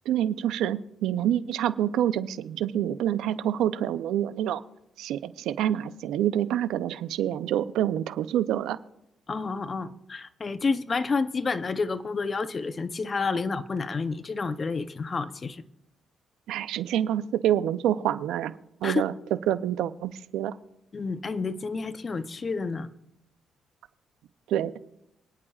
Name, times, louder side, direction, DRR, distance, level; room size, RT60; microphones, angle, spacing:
voice 1, 0.1-4.6 5.0-8.8 16.5-18.5 18.8-19.1 19.5-20.5 24.5-24.7, right 11 dB, 85° right, 14 dB, 0.5 m, -27 dB
voice 2, 9.3-15.6 18.8-19.0 20.9-22.9, left 4 dB, 35° left, 12 dB, 0.7 m, -29 dB
27.0 x 9.9 x 2.4 m, 0.82 s
cardioid pair, 90°, 0 cm